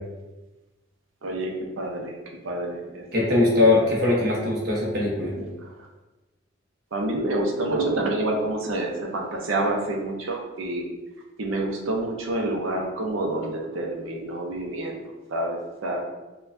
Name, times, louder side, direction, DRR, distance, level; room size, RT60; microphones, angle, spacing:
voice 1, 1.2-2.1 2.4-3.0 3.3-3.5 5.3-5.5 6.9-10.8 11.4-15.0 15.3-16.1, right 2 dB, 85° right, 1 dB, 0.6 m, -28 dB
voice 2, 3.1-5.3, left 2 dB, 50° right, -4 dB, 0.9 m, -21 dB
4.3 x 2.3 x 2.6 m, 1.1 s
head